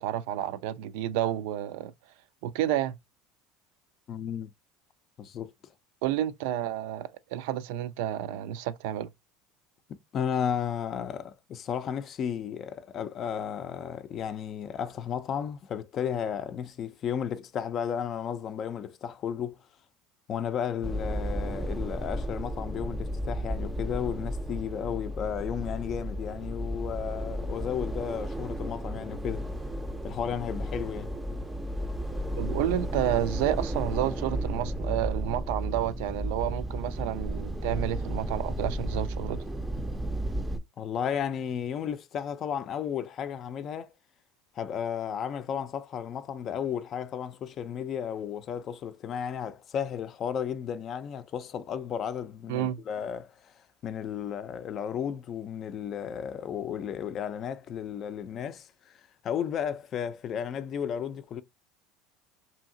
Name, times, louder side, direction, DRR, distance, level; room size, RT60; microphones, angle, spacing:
voice 1, 0.0-1.9 2.4-2.9 6.0-9.1 32.4-39.4 52.5-52.8, right 12 dB, 75° right, 0.3 m, -30 dB
voice 2, 4.1-4.5 5.2-5.5 9.9-19.6 20.3-29.5 30.0-31.1 40.8-43.9 44.6-53.5 53.8-58.9 59.2-61.4, left 8 dB, 45° left, 0.4 m, -33 dB
sound 1, 20.8-40.6, right 1 dB, 10° right, 0.5 m, -33 dB
2.8 x 2.7 x 2.5 m
supercardioid pair, 105°, 0 cm